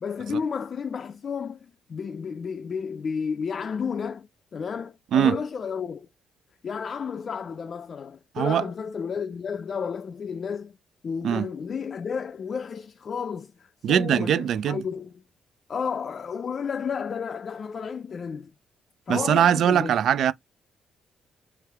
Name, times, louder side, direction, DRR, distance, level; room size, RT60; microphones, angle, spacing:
voice 1, 0.0-6.1 6.6-10.7 11.0-15.1 15.7-18.5 19.1-19.9, left 6 dB, 45° left, 0.4 m, -32 dB
voice 2, 13.8-14.8 19.1-20.3, right 9 dB, 70° right, 0.4 m, -21 dB
3.3 x 3.2 x 3.4 m
cardioid pair, 90°, 0 cm